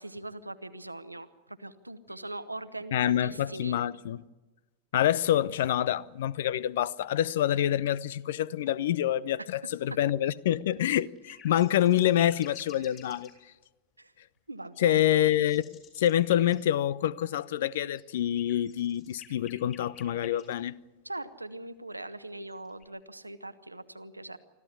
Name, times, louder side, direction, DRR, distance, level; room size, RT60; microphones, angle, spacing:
voice 1, 0.0-3.8 9.9-10.0 14.0-14.1 14.5-15.1 21.0-24.4, right 2 dB, 85° right, 1.1 m, -41 dB
voice 2, 2.9-4.2 4.9-13.3 14.8-15.7 16.0-20.7, left 11 dB, 55° left, 0.6 m, -26 dB
sound 1, 10.7-13.3 14.7-16.6 17.8-20.6 22.2-22.8, left 8 dB, 30° left, 6.4 m, -51 dB
25.5 x 14.5 x 9.6 m
figure-of-eight pair, 90°, 0 cm